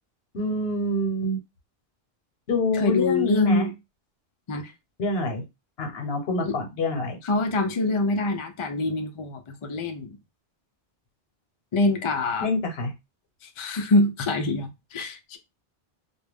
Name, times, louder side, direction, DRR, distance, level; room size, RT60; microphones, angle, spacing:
voice 1, 0.3-1.4 2.5-3.7 5.0-5.5 5.8-7.2 12.4-12.9, left 1 dB, 75° left, 1.0 m, -26 dB
voice 2, 2.7-3.7 4.5-4.7 6.4-6.6 7.2-10.2 11.7-12.5 13.6-15.4, left 2 dB, 50° left, 0.4 m, -25 dB
2.3 x 2.2 x 3.3 m
omnidirectional pair, 1.0 m